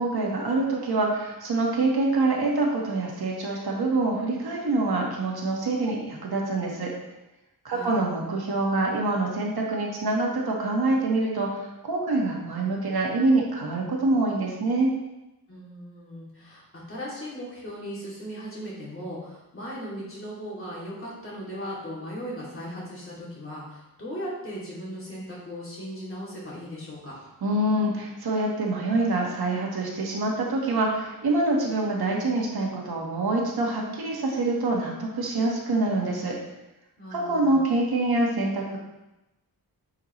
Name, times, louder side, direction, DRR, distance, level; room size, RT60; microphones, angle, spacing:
voice 1, 0.0-6.9 7.6-14.9 27.4-36.4 37.1-38.8, right 2 dB, 90° right, -2 dB, 1.8 m, -25 dB
voice 2, 15.5-27.1 37.0-37.6, equal, 35° left, -7 dB, 3.0 m, -37 dB
8.9 x 5.9 x 3.3 m, 0.96 s
wide cardioid pair, 140°, 37 cm